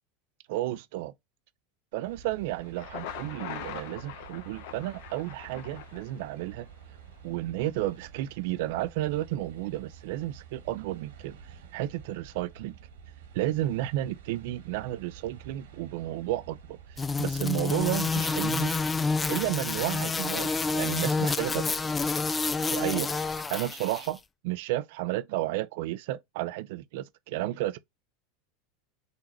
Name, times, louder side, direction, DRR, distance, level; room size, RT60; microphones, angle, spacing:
voice 1, 0.5-1.1 1.9-6.7 7.2-11.4 11.7-12.7 13.3-18.7 19.3-21.6 22.7-27.8, right 15 dB, 70° right, 0.5 m, -32 dB
sound 1, 2.0-20.0, right 7 dB, 85° right, 1.6 m, -50 dB
Thunder, 2.6-6.6, left 10 dB, 70° left, 0.7 m, -42 dB
sound 2, 17.0-24.1, left 4 dB, 15° left, 0.3 m, -28 dB
3.9 x 2.8 x 4.4 m
hypercardioid pair, 105°, 0 cm